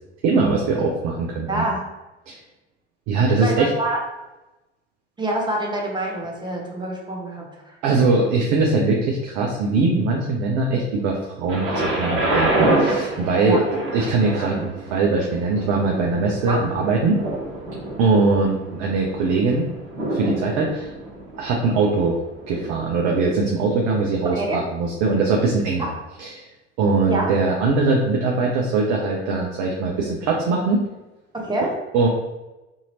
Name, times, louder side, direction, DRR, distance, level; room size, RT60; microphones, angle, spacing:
voice 1, 0.2-1.6 2.3-2.4 3.1-3.7 7.8-13.6 13.9-17.2 18.0-19.7 20.1-20.9 21.4-22.2 22.5-25.9 26.2-26.5 26.8-30.8 31.9-32.1, right 3 dB, 50° right, -1 dB, 0.6 m, -21 dB
voice 2, 1.5-1.8 3.4-4.0 5.2-7.8 13.4-13.6 16.5-16.7 24.2-24.6 25.8-25.9 27.1-27.3 31.3-31.8, right 1 dB, 15° right, -1 dB, 0.7 m, -26 dB
Thunder, 11.5-23.3 24.1-24.2, right 1 dB, 35° right, 1.4 m, -27 dB
2.8 x 2.7 x 2.7 m, 1.0 s
hypercardioid pair, 70°, 34 cm